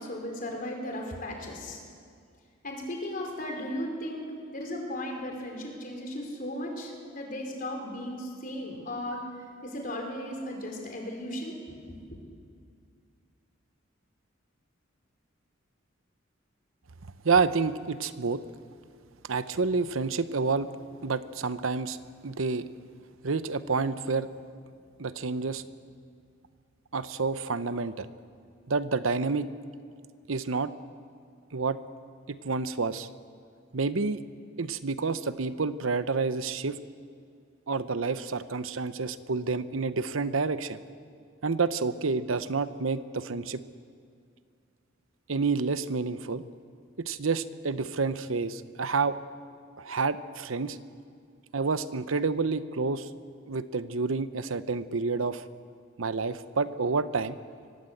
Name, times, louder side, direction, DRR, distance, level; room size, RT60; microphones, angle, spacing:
voice 1, 0.0-1.8 2.6-4.2 4.5-9.2 9.6-12.0, left 1 dB, 40° left, 1 dB, 4.4 m, -36 dB
voice 2, 17.2-18.4 19.3-20.7 21.0-22.0 22.2-22.7 23.2-24.3 25.0-25.6 26.9-28.1 28.7-29.5 30.3-30.7 31.5-31.8 32.3-33.1 33.7-34.2 34.6-36.8 37.7-40.8 41.4-43.6 45.3-46.4 47.0-49.2 49.8-50.8 51.5-53.1 53.5-55.4 56.0-57.4, right 4 dB, 80° right, 13 dB, 0.9 m, -29 dB
24.5 x 18.5 x 8.0 m, 2.3 s
head